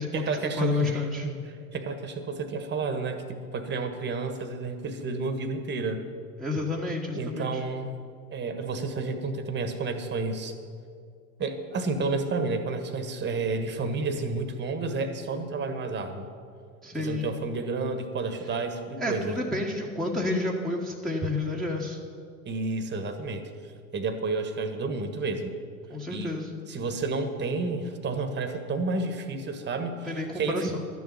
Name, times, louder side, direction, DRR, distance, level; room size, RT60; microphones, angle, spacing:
voice 1, 0.0-6.0 7.1-7.9 8.3-10.5 11.4-16.3 17.0-19.4 22.4-23.5 23.9-25.5 26.1-26.3 26.7-30.1 30.3-30.7, right 3 dB, 25° right, 7 dB, 1.4 m, -31 dB
voice 2, 0.6-1.3 6.4-7.6 16.8-17.3 19.0-22.0 25.9-26.5 30.1-30.8, left 2 dB, ahead, -3 dB, 1.4 m, -30 dB
12.0 x 7.1 x 9.7 m, 2.3 s
hypercardioid pair, 95°, 44 cm